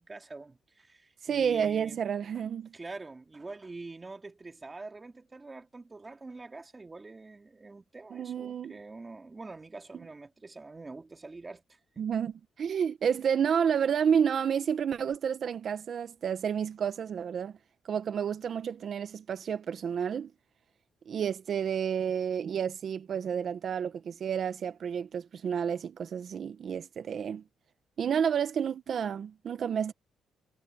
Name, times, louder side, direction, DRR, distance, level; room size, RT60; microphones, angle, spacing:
voice 1, 0.0-2.0 2.7-12.1, right 3 dB, 25° right, 2.9 m, -45 dB
voice 2, 1.2-2.7 8.1-8.8 12.0-17.6 17.9-20.3 21.1-27.4 28.0-29.9, right 7 dB, 55° right, 1.3 m, -30 dB
cardioid pair, 90°, 0 cm